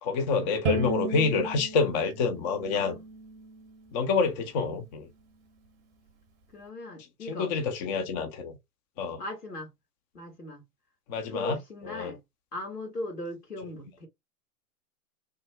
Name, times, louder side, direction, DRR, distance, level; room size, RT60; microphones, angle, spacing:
voice 1, 0.0-3.0 3.9-5.1 7.3-8.6 9.0-9.2 11.1-11.6 11.9-12.1, left 4 dB, 30° left, 0.5 m, -27 dB
Bowed string instrument, 0.7-3.9, right 2 dB, 25° right, 0.7 m, -34 dB
voice 2, 2.7-3.0 6.5-7.5 9.2-9.7 10.1-10.6 11.3-12.2 12.5-14.1, left 1 dB, 85° left, 1.7 m, -38 dB
3.2 x 2.0 x 3.3 m
figure-of-eight pair, 105°, 46 cm